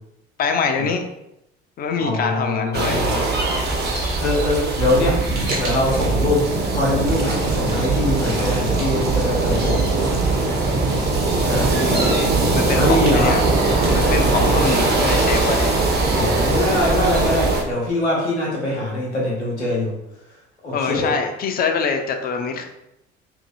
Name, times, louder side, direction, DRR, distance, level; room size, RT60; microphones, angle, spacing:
voice 1, 0.4-1.1 1.8-3.0 9.0-9.2 11.7-13.4 13.9-15.8 20.7-22.7, left 5 dB, 30° left, 5 dB, 0.4 m, -24 dB
voice 2, 2.0-3.3 4.2-5.2 5.6-9.8 11.4-11.7 12.7-13.4 14.3-14.7 16.1-20.0 20.6-21.1, left 1 dB, 90° left, -4 dB, 0.8 m, -23 dB
sound 1, 2.7-17.6, right 2 dB, 30° right, 0.6 m, -21 dB
Fire, 4.8-14.6, right 3 dB, 75° right, 0.9 m, -26 dB
2.6 x 2.6 x 2.5 m, 0.85 s
figure-of-eight pair, 50°, 33 cm